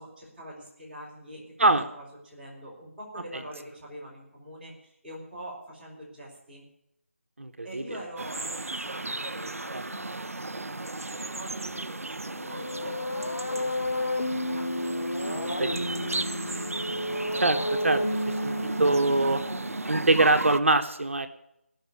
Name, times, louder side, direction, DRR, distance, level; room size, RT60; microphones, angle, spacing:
voice 1, 0.0-6.7 7.6-16.7, right 1 dB, ahead, -13 dB, 4.4 m, -45 dB
voice 2, 7.4-7.8 9.7-9.8 15.2-15.7 17.4-19.4 19.9-21.3, right 2 dB, 60° right, 7 dB, 1.2 m, -24 dB
sound 1, 8.2-20.6, right 2 dB, 80° right, 0.5 m, -35 dB
sound 2, 12.3-20.0, left 1 dB, 85° left, 1.0 m, -32 dB
16.5 x 6.4 x 9.7 m, 0.80 s
figure-of-eight pair, 160°, 8 cm